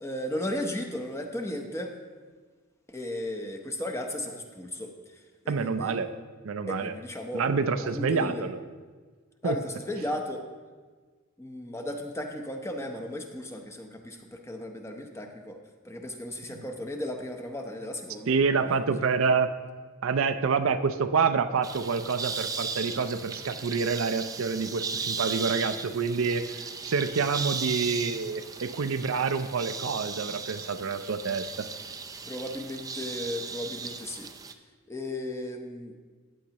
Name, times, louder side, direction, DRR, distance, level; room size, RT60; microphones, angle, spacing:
voice 1, 0.0-1.9 2.9-4.9 5.4-5.9 6.7-7.4 7.8-8.4 9.4-10.4 11.4-15.6 15.8-19.0 32.2-34.3 34.9-35.9, left 1 dB, 15° left, 3 dB, 0.8 m, -35 dB
voice 2, 5.5-6.1 6.4-6.9 7.3-8.6 9.4-9.6 16.6-16.7 18.3-19.5 20.0-26.5 26.8-31.7, right 5 dB, 75° right, 11 dB, 0.5 m, -27 dB
sound 1, 21.6-34.5, right 5 dB, 15° right, 0.4 m, -36 dB
14.5 x 9.1 x 2.9 m, 1.5 s
head